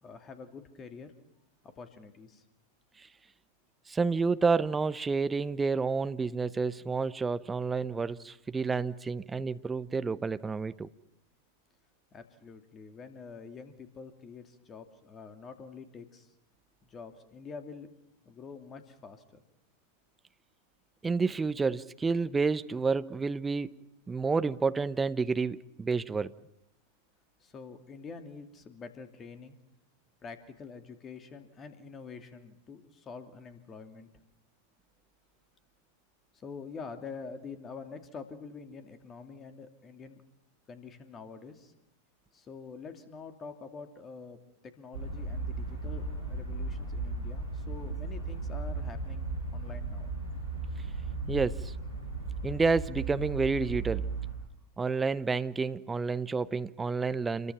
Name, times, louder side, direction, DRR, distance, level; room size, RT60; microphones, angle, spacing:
voice 1, 0.0-1.1 1.8-2.4 12.1-16.3 16.8-17.9 18.2-19.4 27.4-29.6 30.2-34.1 36.4-40.2 40.7-41.7 42.3-44.4 44.8-49.2 49.5-50.1, left 5 dB, 25° left, 2.9 m, -46 dB
voice 2, 3.9-10.9 21.0-23.8 24.1-26.3 51.3-51.7 52.4-54.1 54.8-57.5, right 4 dB, 15° right, 0.9 m, -29 dB
sound 1, 44.9-54.3, right 3 dB, 75° right, 7.2 m, -36 dB
28.5 x 23.0 x 5.9 m
figure-of-eight pair, 90°, 0 cm